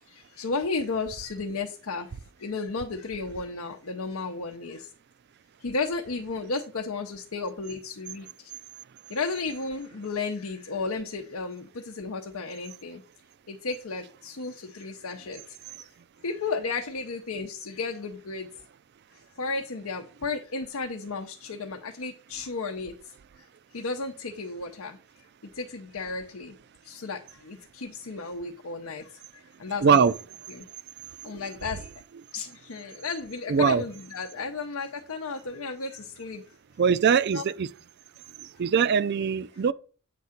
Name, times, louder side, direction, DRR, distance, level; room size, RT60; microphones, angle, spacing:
voice 1, 0.1-2.1 2.4-4.9 5.6-8.5 9.1-13.0 13.5-15.6 16.2-18.5 19.4-23.0 23.4-25.0 25.5-26.5 26.8-30.1 30.5-30.7 31.2-31.9 32.3-36.4 37.3-37.4, left 4 dB, 80° left, 0.7 m, -33 dB
voice 2, 29.8-30.1 31.3-31.4 33.5-33.8 36.8-37.7 38.6-39.7, right 6 dB, 50° right, 0.4 m, -22 dB
8.4 x 3.7 x 5.8 m
head